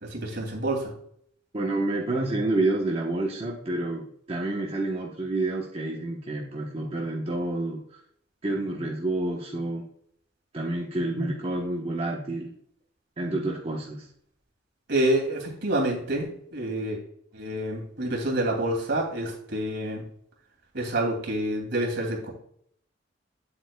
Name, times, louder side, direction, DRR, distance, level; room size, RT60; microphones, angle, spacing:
voice 1, 0.0-0.9 14.9-17.0 17.3-20.0 20.7-22.3, right 1 dB, 65° right, 0 dB, 2.5 m, -28 dB
voice 2, 1.5-8.0 8.4-9.8 10.5-12.5 13.2-14.1, right 2 dB, 30° right, -2 dB, 1.0 m, -29 dB
9.1 x 7.8 x 2.3 m, 0.66 s
head